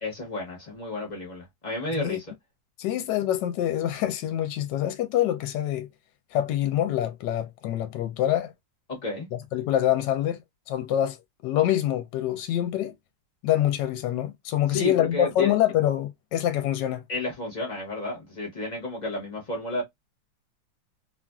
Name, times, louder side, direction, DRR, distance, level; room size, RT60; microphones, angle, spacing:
voice 1, 0.0-2.3 8.9-9.3 14.7-15.5 17.1-19.8, left 2 dB, 30° left, 0.8 m, -31 dB
voice 2, 2.8-5.9 6.3-8.5 9.3-10.4 10.7-11.2 11.4-12.9 13.4-17.0, left 12 dB, 75° left, 1.1 m, -25 dB
3.0 x 2.5 x 2.2 m
omnidirectional pair, 2.0 m